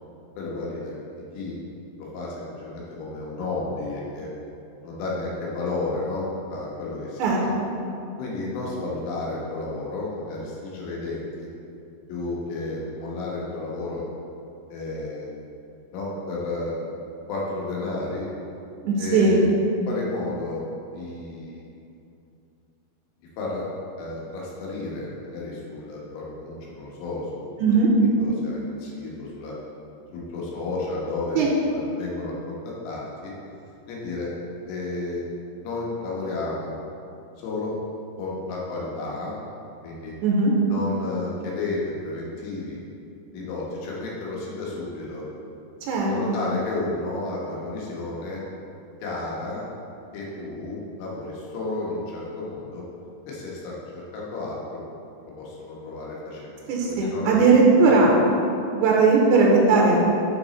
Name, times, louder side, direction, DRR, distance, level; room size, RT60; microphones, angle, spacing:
voice 1, 0.4-1.0 1.3-1.6 2.0-4.3 4.8-7.5 8.2-11.5 12.1-14.0 14.7-15.4 15.9-17.0 17.3-18.3 19.0-19.5 19.9-20.6 20.9-21.6 23.2-23.7 24.0-27.7 28.0-29.5 30.1-33.3 33.9-34.3 34.7-35.3 35.6-36.8 37.4-37.8 38.2-39.4 39.8-40.1 40.7-42.8 43.3-45.2 46.0-48.4 49.0-49.7 50.1-52.9 53.3-54.8 55.3-57.5, left 2 dB, 90° left, -4 dB, 3.4 m, -32 dB
voice 2, 18.8-19.4 27.6-27.9 31.4-31.5 40.2-40.5 45.8-46.4 56.7-58.1 58.7-60.0, right 4 dB, 80° right, -2 dB, 2.8 m, -18 dB
10.5 x 4.0 x 4.1 m, 2.7 s
omnidirectional pair, 4.7 m